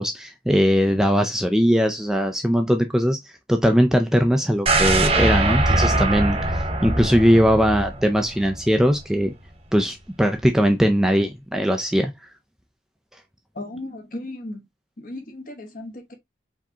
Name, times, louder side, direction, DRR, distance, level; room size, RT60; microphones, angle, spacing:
voice 1, 0.0-3.2 3.5-9.3 9.7-12.1, equal, 5° right, 0.4 m, -20 dB
sound 1, 4.7-8.6 9.0-9.1, right 2 dB, 30° right, 0.8 m, -22 dB
voice 2, 13.5-14.6 15.0-16.1, left 1 dB, 50° left, 1.1 m, -35 dB
4.8 x 3.5 x 2.8 m
head